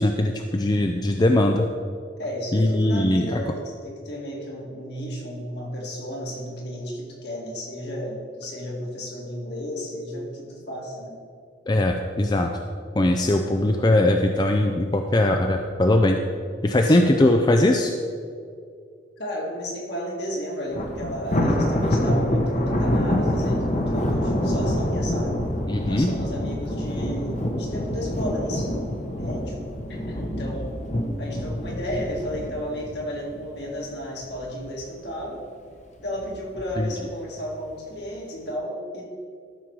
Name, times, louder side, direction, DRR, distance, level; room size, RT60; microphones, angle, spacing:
voice 1, 0.0-1.7 2.5-3.4 11.7-12.5 13.0-16.2 16.6-17.9 25.7-26.1 36.8-36.9, left 1 dB, 20° left, 4 dB, 0.4 m, -20 dB
voice 2, 2.2-11.2 16.7-17.0 19.2-25.4 25.8-29.6 29.9-30.7 31.2-35.5 36.0-39.1, equal, 60° left, -2 dB, 2.2 m, -33 dB
Thunder, 20.7-34.0 34.4-34.7 35.1-35.2 36.1-36.6, left 1 dB, 40° left, 1.1 m, -26 dB
13.0 x 6.1 x 4.7 m, 2.3 s
head